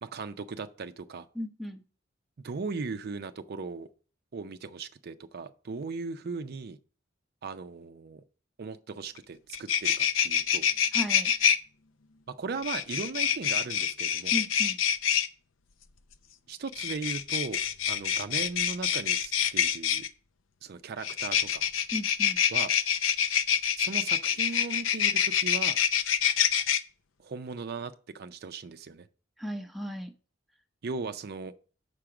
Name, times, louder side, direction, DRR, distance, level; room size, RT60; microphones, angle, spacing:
voice 1, 0.0-1.3 2.4-3.9 4.3-6.8 7.4-8.2 8.6-10.7 12.3-14.3 16.5-17.6 17.9-20.1 20.6-21.6 22.5-22.7 23.8-25.8 27.2-29.1 30.8-31.5, right 4 dB, 55° right, 0.5 m, -38 dB
voice 2, 1.3-1.8 10.9-11.3 14.3-14.8 21.9-22.4 29.4-30.1, equal, ahead, 0.7 m, -35 dB
sound 1, 9.2-9.3 9.5-11.6 12.6-15.3 16.7-20.1 21.0-26.8, left 9 dB, 80° left, 0.6 m, -26 dB
6.7 x 5.0 x 5.8 m
head